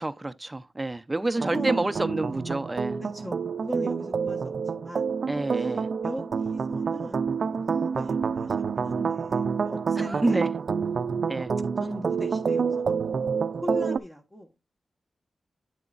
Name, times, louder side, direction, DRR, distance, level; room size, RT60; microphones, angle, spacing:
voice 1, 0.0-3.0 5.3-5.9 10.1-10.5 11.3-11.5, right 2 dB, 20° right, 0.6 m, -28 dB
voice 2, 1.2-1.9 3.0-5.2 5.5-5.7 6.0-10.4 11.8-13.0 13.6-14.5, equal, 15° left, 1.4 m, -39 dB
sound 1, 1.4-14.0, right 6 dB, 65° right, 0.5 m, -28 dB
9.2 x 6.9 x 2.5 m
cardioid pair, 55°, 0 cm